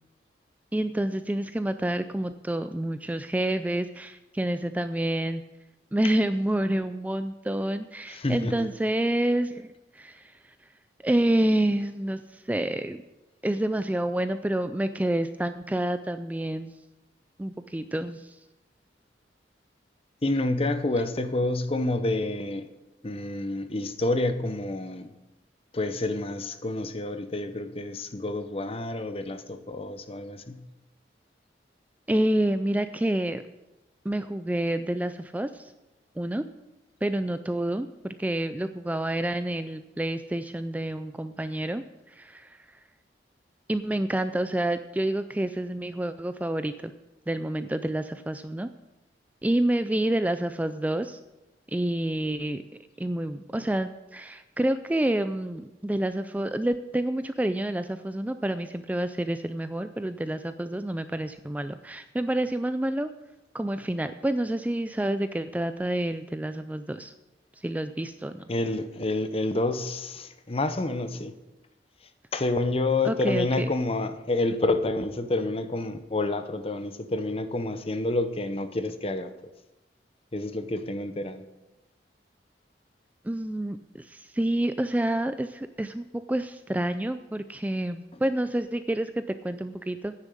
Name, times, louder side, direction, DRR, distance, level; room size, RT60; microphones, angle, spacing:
voice 1, 0.7-5.4 5.9-10.3 11.0-13.0 13.4-16.7 17.4-18.4 32.1-33.4 34.1-35.7 36.2-36.4 37.0-42.6 43.7-46.9 47.3-48.7 49.4-51.2 51.7-52.6 53.0-63.1 63.5-67.1 67.6-68.4 73.0-73.7 83.2-90.1, right 1 dB, 10° right, 10 dB, 0.3 m, -28 dB
voice 2, 8.1-8.7 20.2-22.7 23.0-25.1 25.7-30.6 68.5-71.3 72.3-79.3 80.3-81.4, left 2 dB, 35° left, 10 dB, 0.8 m, -28 dB
10.0 x 7.2 x 8.4 m, 1.0 s
head